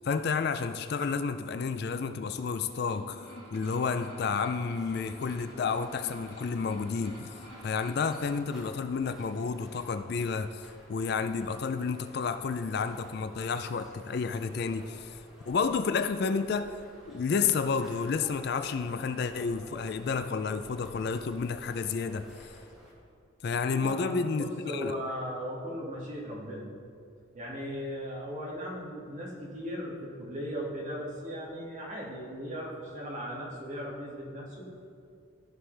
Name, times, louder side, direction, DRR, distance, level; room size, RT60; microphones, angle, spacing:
voice 1, 0.0-15.2 15.5-16.7 17.1-22.5 23.4-24.9, left 5 dB, 50° left, 10 dB, 0.3 m, -31 dB
sound 1, 2.6-8.0, left 1 dB, 75° left, 1.5 m, -50 dB
sound 2, 3.1-8.3, right 1 dB, 50° right, 2.4 m, -53 dB
sound 3, 4.6-22.9, equal, ahead, 1.9 m, -53 dB
voice 2, 23.7-26.7 27.3-34.9, equal, 35° right, -5 dB, 2.0 m, -37 dB
14.5 x 6.1 x 3.3 m, 2.4 s
head